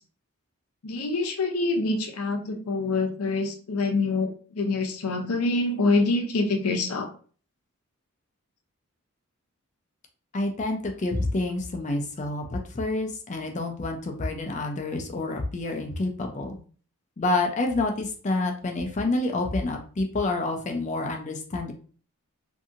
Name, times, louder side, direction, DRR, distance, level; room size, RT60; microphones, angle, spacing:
voice 1, 0.8-7.1, left 3 dB, 80° left, 3 dB, 0.6 m, -26 dB
voice 2, 10.3-16.6 17.2-21.7, left 2 dB, 30° left, 3 dB, 0.4 m, -28 dB
2.7 x 2.6 x 2.5 m, 0.41 s
head